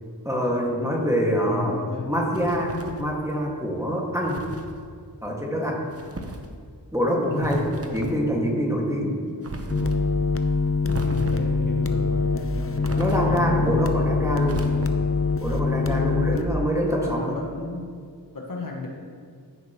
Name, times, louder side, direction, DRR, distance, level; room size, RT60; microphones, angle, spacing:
voice 1, 0.2-1.7 2.1-4.4 5.2-5.8 6.9-7.7 7.9-9.1 13.0-14.6 15.4-17.3, equal, 5° right, -2 dB, 1.9 m, -25 dB
voice 2, 1.4-2.1 7.2-8.3 8.7-8.9 9.4-9.7 11.0-14.3 15.9-16.5 16.9-17.8 18.3-18.9, left 2 dB, 50° left, -1 dB, 1.6 m, -34 dB
sound 1, 2.3-3.1 4.2-4.7 5.9-6.5 7.4-8.2 9.4-10.0 10.9-11.6 12.8-13.5 14.4-15.2, right 2 dB, 35° right, 1.0 m, -36 dB
sound 2, 9.7-16.4, left 4 dB, 30° left, 0.7 m, -24 dB
15.5 x 5.8 x 3.1 m, 2.2 s
cardioid pair, 45°, 42 cm